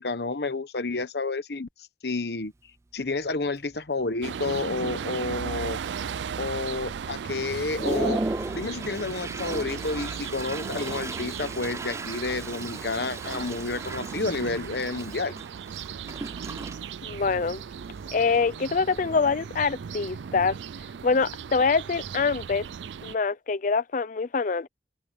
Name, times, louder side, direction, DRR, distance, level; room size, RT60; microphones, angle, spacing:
voice 1, 0.0-1.7 2.0-2.5 2.9-5.8 6.4-8.2 8.5-15.3, left 3 dB, 65° left, 1.1 m, -30 dB
Toilet flush, 2.4-2.5 3.0-3.3 3.6-4.1 4.6-4.7 5.0-5.8 6.2-6.3 6.9-7.0 7.4-19.4, right 2 dB, 15° right, 0.3 m, -36 dB
sound 1, 4.2-23.2, right 7 dB, 90° right, 0.4 m, -37 dB
voice 2, 17.0-17.6 18.1-20.6 21.0-22.7 23.0-24.7, left 4 dB, 45° left, 0.5 m, -25 dB
head